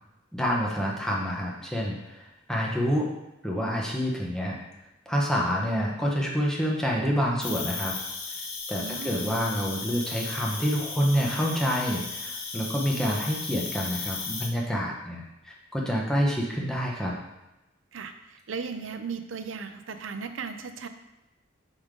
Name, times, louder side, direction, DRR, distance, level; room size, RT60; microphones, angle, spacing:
voice 1, 0.3-2.2 2.5-3.1 3.4-4.6 5.1-7.9 8.7-17.1, equal, 5° left, -3 dB, 0.9 m, -27 dB
Cricket, 7.4-14.5, left 4 dB, 80° left, 1.0 m, -35 dB
voice 2, 8.7-9.4 17.9-20.9, right 5 dB, 70° right, 8 dB, 0.5 m, -37 dB
5.2 x 5.0 x 3.7 m, 0.96 s
head